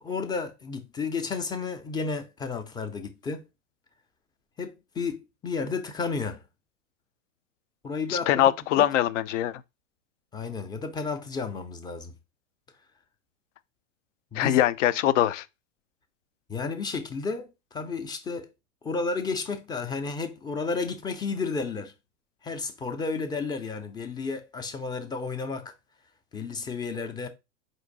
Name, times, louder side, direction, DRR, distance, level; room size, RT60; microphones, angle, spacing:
voice 1, 0.0-3.4 4.6-6.4 7.8-8.9 10.3-12.1 14.3-14.6 16.5-18.5 18.8-21.9 22.4-25.7 26.3-27.3, left 4 dB, 10° left, 0.5 m, -32 dB
voice 2, 8.1-9.6 14.4-15.4, left 12 dB, 60° left, 0.5 m, -23 dB
4.4 x 2.6 x 3.9 m
hypercardioid pair, 95°, 41 cm